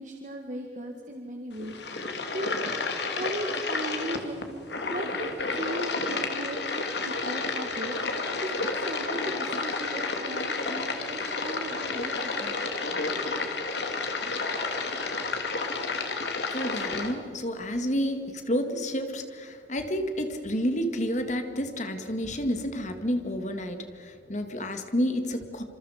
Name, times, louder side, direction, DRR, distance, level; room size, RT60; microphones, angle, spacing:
voice 1, 0.0-1.8 2.3-2.6 3.1-12.6, right 1 dB, 45° right, 2 dB, 1.9 m, -37 dB
sound 1, 1.5-17.1, left 3 dB, 70° left, 2.6 m, -31 dB
voice 2, 16.5-25.6, equal, 40° left, 6 dB, 2.1 m, -30 dB
27.0 x 27.0 x 5.1 m, 2.2 s
head